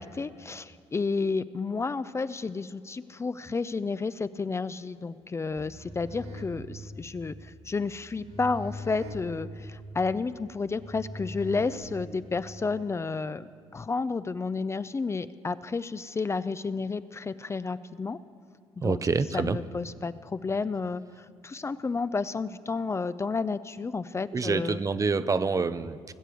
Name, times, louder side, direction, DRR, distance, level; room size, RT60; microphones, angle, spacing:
voice 1, 0.0-18.2 18.8-19.0 19.3-24.8, left 4 dB, 25° left, 14 dB, 0.5 m, -31 dB
sound 1, 5.5-12.4, equal, 65° right, 1.9 m, -42 dB
voice 2, 18.8-19.6 24.3-26.1, right 4 dB, 30° right, 14 dB, 0.6 m, -27 dB
19.5 x 7.6 x 8.3 m, 2.5 s
cardioid pair, 85°, 11 cm